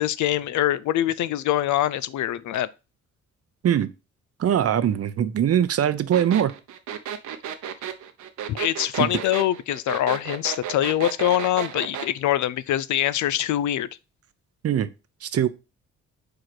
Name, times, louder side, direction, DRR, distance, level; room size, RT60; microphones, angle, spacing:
voice 1, 0.0-2.7 8.5-13.9, left 12 dB, 70° left, 0.6 m, -24 dB
voice 2, 4.4-6.5 9.0-9.1 14.6-14.9 15.2-15.5, right 9 dB, 50° right, 0.8 m, -21 dB
sound 1, 6.1-12.1, right 9 dB, 75° right, 1.0 m, -33 dB
5.0 x 4.8 x 5.9 m
cardioid pair, 90°, 30 cm